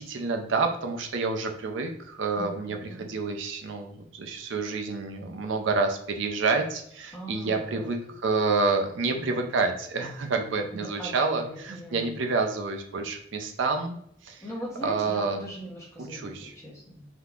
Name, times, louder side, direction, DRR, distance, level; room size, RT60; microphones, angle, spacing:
voice 1, 0.0-14.0 14.2-14.4 14.8-15.4 16.0-16.5, right 4 dB, 70° right, 4 dB, 0.5 m, -28 dB
voice 2, 2.4-3.2 7.1-7.9 9.1-9.4 10.7-12.2 14.4-17.1, equal, 15° left, -3 dB, 0.7 m, -40 dB
3.5 x 2.8 x 2.3 m, 0.69 s
head